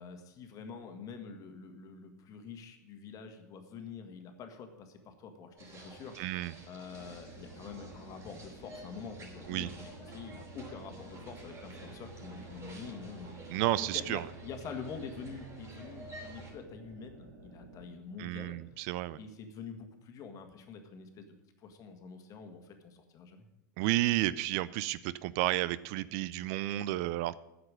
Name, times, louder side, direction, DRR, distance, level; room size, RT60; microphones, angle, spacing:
voice 1, 0.0-6.2 6.7-18.8 19.2-21.3 21.6-23.4, left 5 dB, 35° left, 6 dB, 1.8 m, -46 dB
sound 1, 5.6-16.5, right 2 dB, 30° right, 4.2 m, -50 dB
voice 2, 6.2-6.5 9.5-9.7 13.5-14.3 18.2-19.2 23.8-27.4, right 16 dB, 50° right, 18 dB, 0.4 m, -32 dB
sound 2, 6.9-17.9, right 2 dB, 70° right, 2.2 m, -54 dB
9.5 x 6.9 x 8.9 m, 0.98 s
hypercardioid pair, 100°, 10 cm